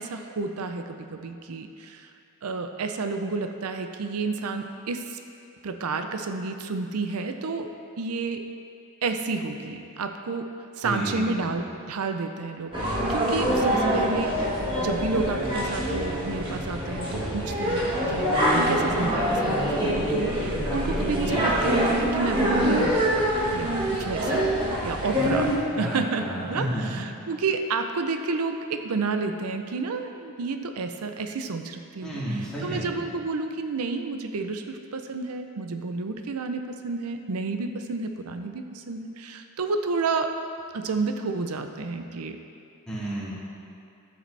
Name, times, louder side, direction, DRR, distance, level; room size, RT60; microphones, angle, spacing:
voice 1, 0.0-2.1 2.4-5.2 5.6-7.7 8.0-8.4 9.0-10.5 10.8-14.3 14.8-23.3 23.5-24.5 24.8-40.3 40.7-42.4, right 4 dB, 90° right, 6 dB, 0.6 m, -30 dB
voice 2, 10.8-11.4 25.8-27.1 32.0-32.9 42.9-43.3, right 1 dB, 5° left, -10 dB, 2.6 m, -31 dB
sound 1, 12.7-25.6, equal, 25° right, 1.7 m, -25 dB
13.0 x 7.6 x 3.3 m, 2.5 s
head